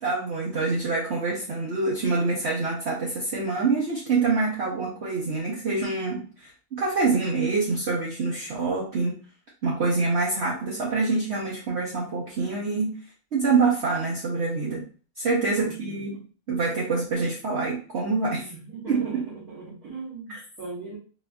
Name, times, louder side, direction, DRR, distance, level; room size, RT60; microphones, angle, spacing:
voice 1, 0.0-9.2 9.6-12.9 13.3-14.9 15.2-16.2 16.5-18.5 18.9-19.3 20.3-20.4, right 4 dB, 55° right, -4 dB, 0.9 m, -26 dB
voice 2, 15.6-16.0 18.5-21.0, right 4 dB, 75° right, -8 dB, 1.8 m, -39 dB
4.2 x 2.5 x 2.3 m, 0.37 s
omnidirectional pair, 1.6 m